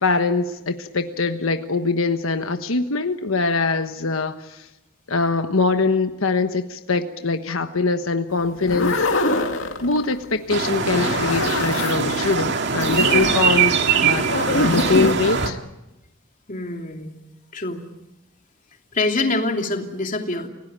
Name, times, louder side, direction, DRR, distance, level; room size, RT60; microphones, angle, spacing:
voice 1, 0.0-4.7 5.1-9.3 9.8-15.6, left 3 dB, 90° left, 7 dB, 1.3 m, -23 dB
sound 1, 8.5-10.2 10.8-12.3 12.8-15.1, left 2 dB, 65° left, 2.7 m, -24 dB
sound 2, 10.5-15.5, right 6 dB, 60° right, 2.0 m, -22 dB
voice 2, 16.5-17.1 17.5-17.8 18.9-20.5, left 2 dB, 40° left, 3 dB, 2.9 m, -25 dB
29.0 x 17.5 x 8.8 m, 0.97 s
head